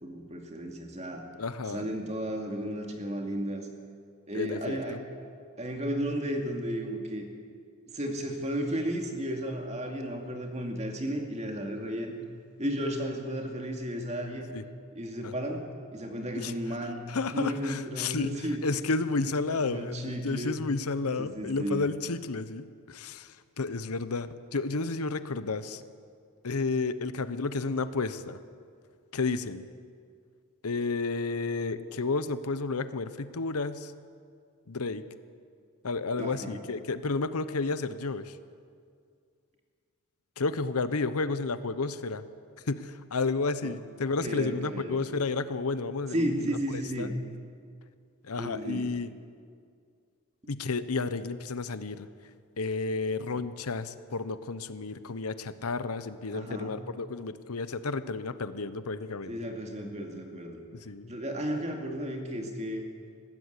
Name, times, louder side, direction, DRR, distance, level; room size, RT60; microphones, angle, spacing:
voice 1, 0.0-1.3 1.7-3.7 4.3-5.0 5.6-7.3 7.9-12.2 12.6-14.5 14.9-18.6 19.2-20.6 21.2-21.9 36.2-36.6 43.6-43.7 44.2-45.2 46.1-47.2 48.4-48.9 56.3-56.8 59.3-60.6 61.1-62.9, equal, 30° right, 3 dB, 2.4 m, -34 dB
voice 2, 1.4-1.9 4.3-5.0 14.5-14.6 15.2-15.3 16.4-16.5 17.1-18.3 18.6-25.8 26.4-28.4 29.1-29.6 30.6-33.9 34.7-35.0 35.8-38.4 40.4-42.2 42.7-46.4 47.0-47.1 48.2-49.1 50.5-52.1 52.6-59.5 60.8-61.1, left 3 dB, 80° left, 13 dB, 0.9 m, -31 dB
21.0 x 15.5 x 8.3 m, 2.2 s
head